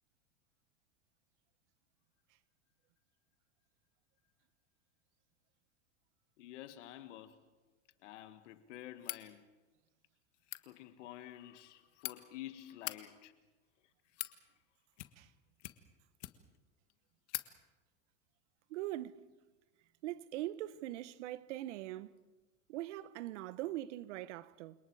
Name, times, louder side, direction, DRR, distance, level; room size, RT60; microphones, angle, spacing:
voice 1, 6.4-7.4 8.0-9.5 10.6-13.3 13.8-13.9 14.2-14.3, left 13 dB, 75° left, 1.9 m, -50 dB
sound 1, 9.0-9.3 10.3-10.6 11.6-12.1 12.7-13.0 13.8-14.4 14.9-15.3 15.6-16.6 16.9-17.0 17.3-17.5, left 21 dB, 60° left, 1.6 m, -43 dB
voice 2, 18.7-19.2 20.0-22.2 22.7-24.7, right 15 dB, 70° right, 1.1 m, -41 dB
29.5 x 26.5 x 4.8 m
supercardioid pair, 140°, 36 cm